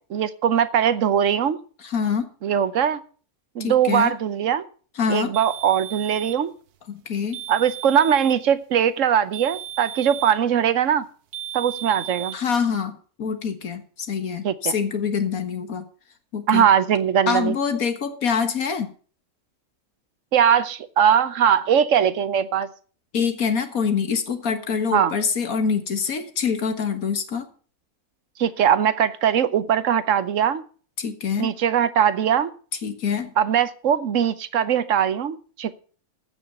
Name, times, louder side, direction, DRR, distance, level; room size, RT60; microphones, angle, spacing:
voice 1, 0.1-1.6 2.4-3.0 3.5-4.6 5.1-6.5 7.5-11.1 11.5-12.4 14.4-14.7 16.5-17.5 20.3-22.7 24.9-25.1 28.4-30.6 31.4-32.5 33.4-35.7, right 8 dB, 60° right, 1.1 m, -20 dB
voice 2, 1.8-2.3 3.6-4.1 5.0-5.3 6.9-7.4 12.3-15.9 16.3-16.7 17.3-18.9 23.1-27.5 31.0-31.6 32.8-33.3, left 6 dB, 70° left, 1.9 m, -25 dB
sound 1, 5.3-6.5 7.3-8.5 9.3-10.5 11.3-12.4, right 10 dB, 85° right, 1.3 m, -35 dB
15.0 x 6.3 x 6.7 m
omnidirectional pair, 1.6 m